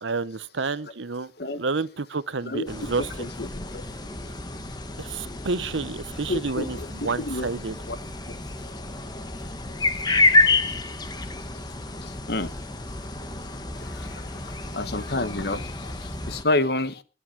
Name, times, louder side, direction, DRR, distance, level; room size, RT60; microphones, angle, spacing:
voice 1, 0.0-3.3 5.0-7.8, right 4 dB, 85° right, 0.9 m, -30 dB
voice 2, 2.4-3.5 6.3-7.5 7.9-8.0 12.3-12.5 14.7-15.6 16.3-16.9, left 2 dB, 60° left, 1.3 m, -28 dB
sound 1, 2.7-16.4, left 3 dB, 20° left, 1.4 m, -29 dB
21.0 x 8.3 x 6.0 m
head